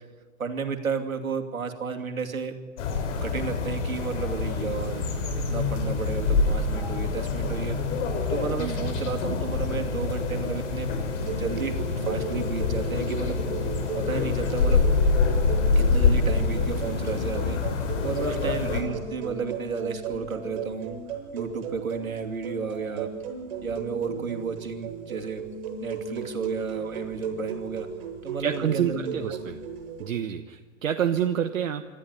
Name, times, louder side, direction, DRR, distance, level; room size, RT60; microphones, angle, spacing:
voice 1, 0.4-2.5 3.2-5.0 5.4-7.8 8.3-10.9 11.4-13.4 13.9-14.8 15.7-21.0 21.3-23.1 23.6-25.4 25.8-27.9 28.2-29.4, right 5 dB, 90° right, 4 dB, 2.9 m, -32 dB
sound 1, 2.8-18.8, left 4 dB, 55° left, 5.1 m, -26 dB
sound 2, 9.6-15.9, left 4 dB, 80° left, 4.6 m, -39 dB
sound 3, 11.1-30.1, right 6 dB, 50° right, 7.4 m, -36 dB
voice 2, 28.4-29.6 30.0-31.9, right 9 dB, 75° right, 7 dB, 1.3 m, -28 dB
26.0 x 13.5 x 9.8 m, 1.5 s
hypercardioid pair, 115°, 41 cm